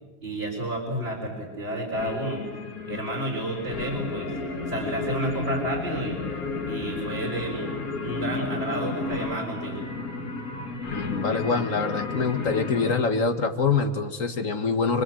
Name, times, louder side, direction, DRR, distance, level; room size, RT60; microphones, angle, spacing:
voice 1, 0.2-2.4 2.9-4.3 4.7-6.2 6.7-7.7 8.0-9.8, right 1 dB, 40° right, -2 dB, 4.5 m, -31 dB
sound 1, 1.9-13.0, left 3 dB, 75° left, 2.4 m, -32 dB
voice 2, 10.9-15.0, left 4 dB, 60° left, 7 dB, 1.8 m, -25 dB
29.5 x 23.0 x 7.7 m, 1.3 s
omnidirectional pair, 1.5 m